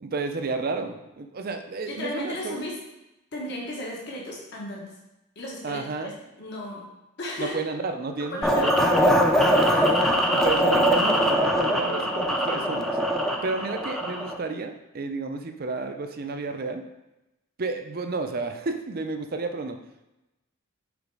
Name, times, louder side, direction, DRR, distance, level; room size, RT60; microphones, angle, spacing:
voice 1, 0.0-2.6 5.6-6.1 7.4-9.2 10.3-13.0 13.4-16.8 17.6-19.8, right 3 dB, 50° right, 6 dB, 0.5 m, -31 dB
voice 2, 1.9-2.7 3.3-4.9 5.3-5.9 6.4-6.8 7.2-7.5 8.3-8.7 9.6-10.3, left 1 dB, 55° left, -3 dB, 1.3 m, -35 dB
sound 1, 8.4-14.4, equal, ahead, 0.5 m, -22 dB
5.1 x 4.0 x 4.8 m, 0.95 s
head